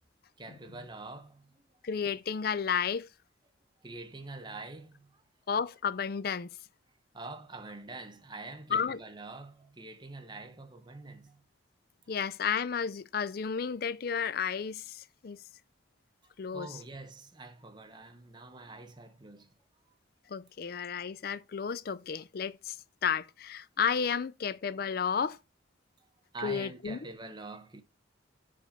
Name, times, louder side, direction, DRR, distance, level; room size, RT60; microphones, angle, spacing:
voice 1, 0.4-1.6 3.8-5.2 7.1-11.4 16.2-19.5 19.8-19.9 26.3-27.8, right 3 dB, 25° right, 0.9 m, -45 dB
voice 2, 1.8-3.1 5.5-6.6 8.7-9.0 12.1-15.4 16.4-16.8 20.3-22.8 23.0-25.4 26.4-27.0, left 6 dB, 50° left, 0.4 m, -32 dB
5.2 x 5.0 x 5.7 m
head